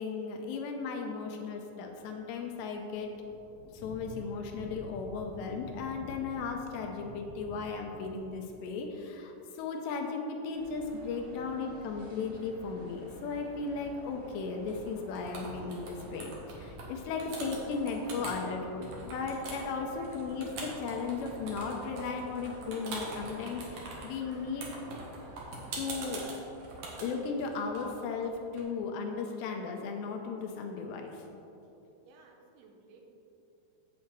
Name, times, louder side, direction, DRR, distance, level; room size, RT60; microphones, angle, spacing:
voice 1, 0.0-3.1 3.7-24.7 25.8-26.2 27.0-31.2, left 4 dB, 85° left, 2 dB, 2.8 m, -36 dB
sound 1, 2.0-2.1 2.3-8.6, left 1 dB, 65° left, 1.6 m, -48 dB
sound 2, 10.5-26.2, equal, 50° right, 2.1 m, -51 dB
sound 3, 14.7-14.9 15.1-16.9 17.2-18.4 18.8-28.6, right 3 dB, 65° right, 1.9 m, -43 dB
voice 2, 32.0-33.0, right 6 dB, 85° right, 2 dB, 3.3 m, -54 dB
8.3 x 7.6 x 4.5 m, 2.9 s
omnidirectional pair, 5.2 m